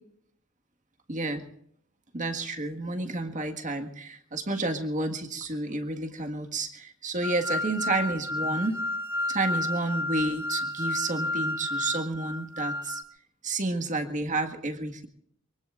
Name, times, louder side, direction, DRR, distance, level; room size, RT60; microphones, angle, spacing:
voice 1, 1.1-1.4 2.1-8.8 9.3-13.0 13.4-15.1, right 2 dB, 40° right, 6 dB, 1.7 m, -30 dB
sound 1, 7.2-13.0, left 1 dB, 10° right, 1.2 m, -31 dB
24.0 x 23.5 x 2.5 m, 0.68 s
head